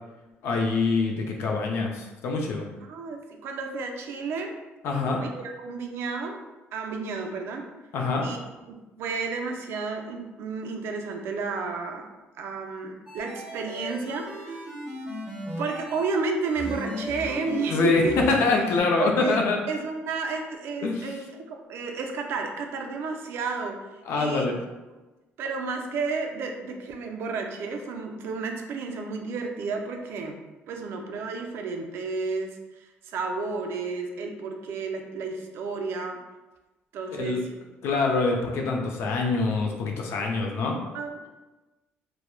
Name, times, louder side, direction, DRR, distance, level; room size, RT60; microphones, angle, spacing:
voice 1, 0.4-2.6 4.8-5.2 7.9-8.3 17.7-18.0 18.4-19.6 20.8-21.1 24.0-24.6 37.1-37.4 37.8-40.8, left 3 dB, 75° left, 1 dB, 0.4 m, -25 dB
voice 2, 2.9-4.6 5.2-6.4 6.7-7.7 8.2-8.4 9.0-12.1 12.4-14.6 15.6-18.1 19.0-19.4 19.7-23.8 24.2-24.5 25.4-30.4 30.7-36.2 36.9-37.6 40.9-41.3, right 4 dB, 65° right, 3 dB, 0.4 m, -32 dB
sound 1, 13.1-16.1 16.5-18.8, left 1 dB, 10° right, 0.8 m, -36 dB
3.0 x 2.0 x 2.2 m, 1.1 s
cardioid pair, 140°, 4 cm